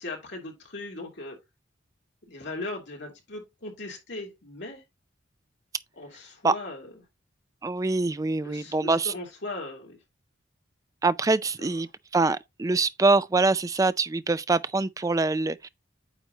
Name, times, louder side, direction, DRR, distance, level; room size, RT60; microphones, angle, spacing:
voice 1, 0.0-1.4 2.3-4.8 6.0-6.9 8.4-10.0 11.6-11.8, left 2 dB, 65° left, 2.8 m, -38 dB
voice 2, 7.6-9.1 11.0-11.9 12.1-15.7, right 3 dB, 20° right, 0.3 m, -24 dB
9.1 x 3.1 x 3.9 m
head